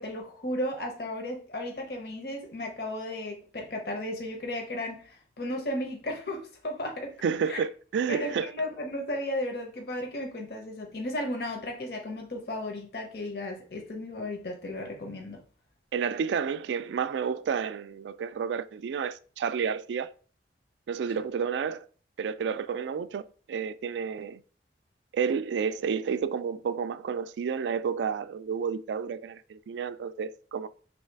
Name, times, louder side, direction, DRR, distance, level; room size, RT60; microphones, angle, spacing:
voice 1, 0.0-7.1 7.4-7.6 8.1-15.4, left 1 dB, 60° left, 0.8 m, -34 dB
voice 2, 7.2-8.5 15.9-20.1 20.9-21.9 22.2-24.4 25.1-30.7, right 6 dB, 75° right, 0.3 m, -30 dB
3.2 x 2.7 x 4.6 m
head